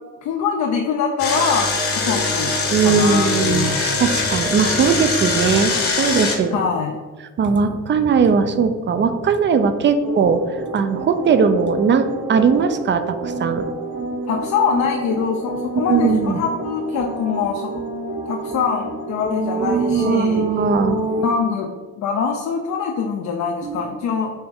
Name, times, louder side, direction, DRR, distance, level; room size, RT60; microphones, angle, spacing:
voice 1, 0.2-3.8 6.5-7.0 14.3-17.8 18.3-20.4 21.2-24.3, left 6 dB, 65° left, 2 dB, 0.5 m, -24 dB
Engine, 1.2-6.4, left 3 dB, 50° left, 1.0 m, -22 dB
voice 2, 2.7-3.7 4.0-6.7 7.4-10.4 10.7-13.6 15.8-16.4 19.6-21.0 23.6-23.9, right 5 dB, 40° right, 9 dB, 0.4 m, -19 dB
sound 1, 10.0-21.2, right 2 dB, 65° right, 1.4 m, -28 dB
4.2 x 2.8 x 3.7 m, 1.4 s
cardioid pair, 90°, 30 cm